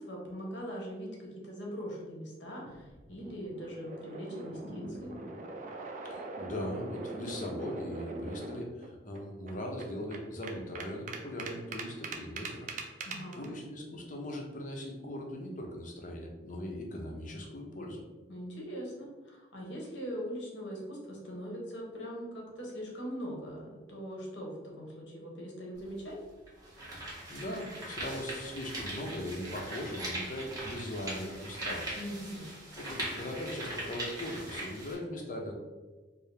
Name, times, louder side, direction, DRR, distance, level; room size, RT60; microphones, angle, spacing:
voice 1, 0.0-5.1 13.0-13.6 18.3-26.2 32.0-32.4, equal, 80° left, -2 dB, 1.0 m, -41 dB
sound 1, 2.6-8.9 9.1-9.2 9.5-13.5, right 3 dB, 45° right, 0.4 m, -42 dB
voice 2, 6.0-13.1 13.4-18.0 26.9-32.0 32.8-35.5, left 1 dB, 45° left, 0 dB, 0.6 m, -40 dB
sound 2, 25.8-25.9 26.5-34.9, right 1 dB, 20° right, 1.0 m, -40 dB
4.6 x 2.0 x 3.3 m, 1.3 s
head